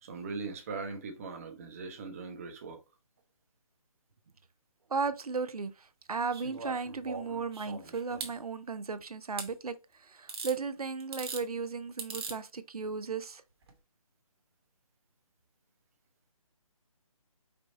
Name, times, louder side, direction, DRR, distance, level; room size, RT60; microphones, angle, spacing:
voice 1, 0.0-2.8, right 4 dB, 25° right, 0.7 m, -40 dB
voice 2, 4.9-9.8 10.1-13.4, right 5 dB, 90° right, 0.6 m, -35 dB
sound 1, 6.3-8.3 9.4-9.5 10.3-10.6 11.0-11.4 12.0-12.4 13.6-13.7, right 4 dB, 45° right, 1.2 m, -40 dB
5.1 x 2.3 x 4.1 m
hypercardioid pair, 160°, 19 cm